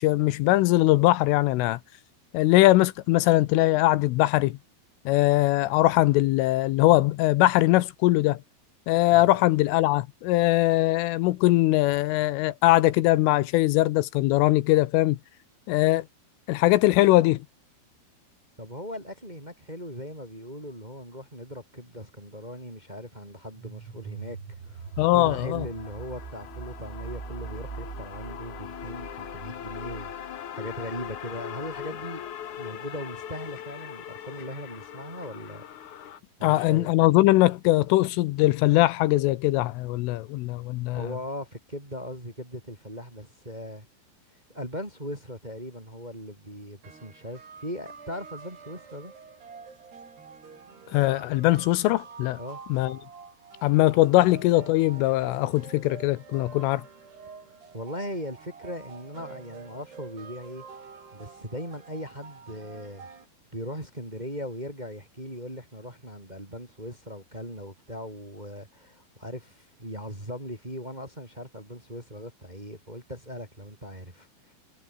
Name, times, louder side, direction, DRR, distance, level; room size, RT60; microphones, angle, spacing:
voice 1, 0.0-1.8 2.3-4.6 5.1-8.4 8.9-15.2 15.7-16.1 16.5-17.5 25.0-25.7 36.4-41.1 50.9-52.4 52.7-53.0 53.6-56.8, left 18 dB, 80° left, 3.4 m, -21 dB
voice 2, 9.1-9.4 18.6-24.9 25.1-32.2 32.6-35.6 36.4-36.9 40.9-43.8 44.5-49.1 52.4-52.6 57.7-60.6 61.1-63.1 63.5-74.3, equal, 10° right, 3.4 m, -39 dB
sound 1, 23.6-32.3, right 6 dB, 80° right, 9.3 m, -42 dB
sound 2, 24.9-36.2, left 10 dB, 60° left, 2.2 m, -41 dB
sound 3, 46.8-63.3, right 5 dB, 55° right, 7.8 m, -47 dB
omnidirectional pair, 5.8 m